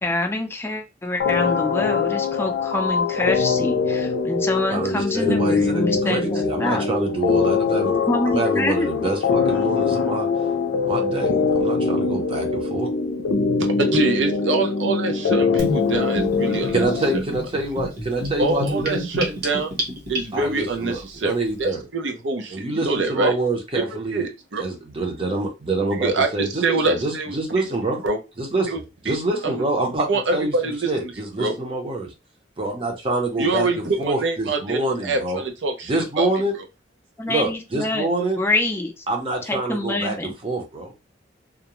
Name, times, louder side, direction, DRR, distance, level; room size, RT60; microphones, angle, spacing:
voice 1, 0.0-6.9 8.1-9.2 37.2-38.1 38.4-39.0 39.4-40.4, left 2 dB, 15° left, 2 dB, 0.5 m, -26 dB
sound 1, 1.2-17.2, left 5 dB, 75° left, 0.4 m, -23 dB
voice 2, 4.7-5.8 6.1-8.0 8.3-10.3 10.9-11.3 11.6-12.9 16.7-19.0 20.3-21.8 22.5-24.2 24.6-28.0 28.5-28.7 29.0-30.5 30.9-32.1 32.6-33.7 34.0-35.4 35.9-36.5 37.3-38.4 39.1-40.2 40.4-40.9, right 2 dB, 30° right, 2 dB, 0.7 m, -26 dB
voice 3, 13.9-16.9 17.1-17.2 18.4-19.7 20.1-23.4 23.7-24.6 25.8-27.7 28.0-28.2 28.7-29.6 30.1-31.6 33.4-36.7, right 3 dB, 70° right, 4 dB, 0.6 m, -25 dB
Gurgling / Bathtub (filling or washing), 15.6-20.6, equal, 55° right, 1.1 m, -28 dB
2.4 x 2.1 x 3.0 m, 0.26 s
head